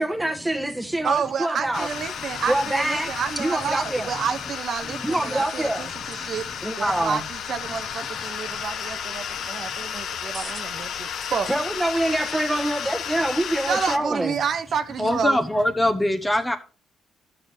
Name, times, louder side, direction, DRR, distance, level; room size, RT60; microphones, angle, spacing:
voice 1, 0.0-1.9 2.5-3.1 3.4-4.1 5.0-5.8 6.6-7.2 10.3-10.6 11.5-14.4, right 1 dB, 10° right, 1.3 m, -25 dB
voice 2, 1.0-11.5 13.7-15.4, right 6 dB, 60° right, 0.7 m, -29 dB
sound 1, 1.7-14.0, left 8 dB, 70° left, 0.7 m, -33 dB
voice 3, 15.0-16.6, left 1 dB, 10° left, 1.0 m, -23 dB
13.0 x 6.5 x 2.7 m
cardioid pair, 90°, 0 cm